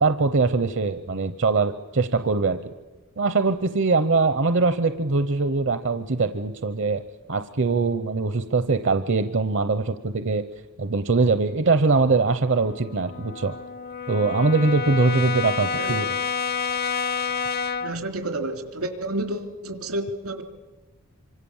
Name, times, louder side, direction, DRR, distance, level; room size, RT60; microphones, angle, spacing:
voice 1, 0.0-2.6 3.2-7.0 7.3-10.5 10.8-13.6 14.1-16.1, right 3 dB, 60° right, 10 dB, 0.8 m, -22 dB
Brass instrument, 12.5-18.0, left 6 dB, 45° left, 0.7 m, -29 dB
voice 2, 17.8-20.4, right 1 dB, 90° right, 5 dB, 3.2 m, -30 dB
26.5 x 25.0 x 7.3 m, 1.2 s
head